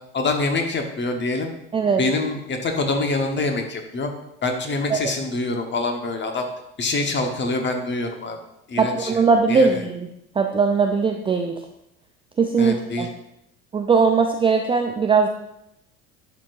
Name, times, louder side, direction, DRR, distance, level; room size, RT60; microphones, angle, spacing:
voice 1, 0.1-1.5 2.0-4.1 4.4-6.5 6.8-8.4 8.7-9.2 9.5-9.8 12.6-13.1, left 3 dB, 25° left, 4 dB, 1.2 m, -25 dB
voice 2, 8.8-10.1 10.4-11.5 12.4-13.1 13.7-15.3, right 5 dB, 15° right, 4 dB, 0.4 m, -19 dB
11.0 x 4.5 x 2.6 m, 0.81 s
hypercardioid pair, 70°, 40 cm